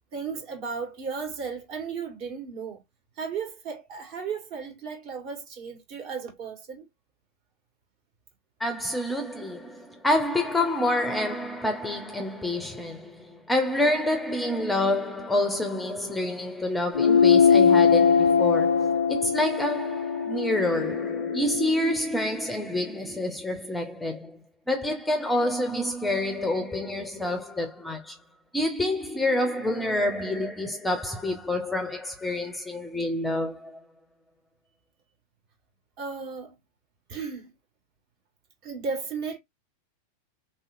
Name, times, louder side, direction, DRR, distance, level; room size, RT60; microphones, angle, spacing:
voice 1, 0.1-2.8 3.2-6.9 36.0-36.6 37.1-37.5 38.6-39.4, right 5 dB, 45° right, 1.6 m, -35 dB
voice 2, 8.6-24.4 24.7-28.2 28.5-33.8, left 1 dB, 5° left, 0.6 m, -28 dB
sound 1, 16.9-21.8, left 6 dB, 75° left, 0.4 m, -21 dB
3.2 x 2.8 x 2.5 m
figure-of-eight pair, 90°, 0 cm